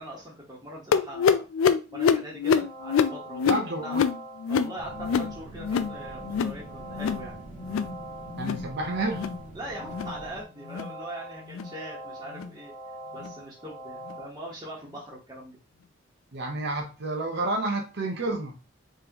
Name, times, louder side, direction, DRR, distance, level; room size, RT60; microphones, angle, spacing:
voice 1, 0.0-1.4 1.9-4.0 4.5-7.3 9.5-12.7 13.1-15.6, right 1 dB, 20° right, 1.2 m, -41 dB
sound 1, 0.9-6.0 6.2-6.6 6.9-7.3 7.6-8.0 8.3-8.7 9.1-9.4 9.9-10.2 10.7-10.9 11.5-11.7 12.3-12.5 13.2-13.3 14.1-14.2, left 6 dB, 75° left, 0.3 m, -26 dB
sound 2, 2.5-14.3, right 1 dB, 15° left, 1.4 m, -43 dB
voice 2, 3.5-4.0 8.4-9.3 16.3-18.6, right 2 dB, 60° right, 0.8 m, -30 dB
Autobus Interurbano Madrid Parte Atras, 4.8-10.4, right 2 dB, 40° right, 1.2 m, -45 dB
3.7 x 3.2 x 2.9 m
head